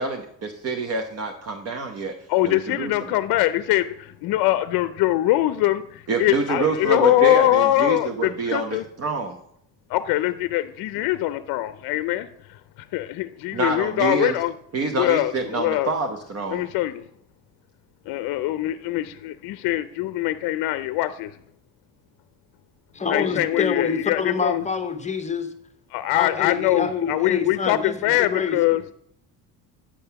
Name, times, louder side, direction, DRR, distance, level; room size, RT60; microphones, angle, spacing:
voice 1, 0.0-2.1 2.4-3.1 6.1-9.4 13.5-14.4 14.7-16.6, right 4 dB, 40° right, 4 dB, 0.9 m, -27 dB
voice 2, 2.3-8.8 9.9-12.3 12.9-14.5 15.0-15.9 16.5-17.0 18.1-21.3 23.1-24.6 25.9-28.8, left 15 dB, 70° left, 12 dB, 0.5 m, -23 dB
voice 3, 22.9-25.5 26.1-28.9, left 5 dB, 20° left, 8 dB, 0.8 m, -26 dB
8.6 x 5.5 x 5.8 m, 0.70 s
cardioid pair, 125°, 38 cm